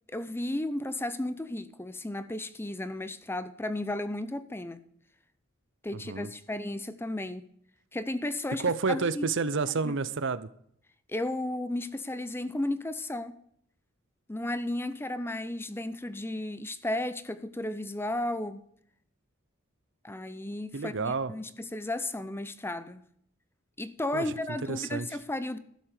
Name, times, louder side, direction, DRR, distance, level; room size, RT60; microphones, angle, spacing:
voice 1, 0.1-4.8 5.8-7.4 7.9-9.3 9.8-9.9 11.1-13.4 14.3-18.6 20.0-23.0 23.8-25.6, left 1 dB, 10° left, 0.6 m, -34 dB
voice 2, 5.9-6.3 8.6-10.5 20.7-21.3 24.1-24.3 24.6-25.1, right 4 dB, 60° right, 0.7 m, -30 dB
12.5 x 7.6 x 6.7 m
head